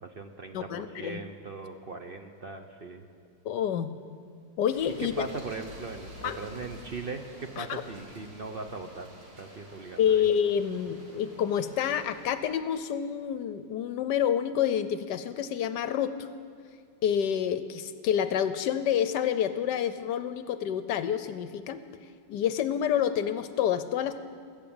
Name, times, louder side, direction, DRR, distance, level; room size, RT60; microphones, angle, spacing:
voice 1, 0.0-3.0 5.2-9.1 9.4-10.3, right 3 dB, 60° right, 5 dB, 0.6 m, -39 dB
voice 2, 0.5-1.2 3.4-3.9 4.6-5.1 6.2-6.4 7.6-7.8 10.0-16.3 17.0-21.8 22.3-24.2, left 9 dB, 75° left, 12 dB, 1.2 m, -28 dB
sound 1, 4.7-12.4, right 1 dB, 75° right, 3.6 m, -49 dB
21.0 x 7.3 x 8.7 m, 2.2 s
omnidirectional pair, 2.0 m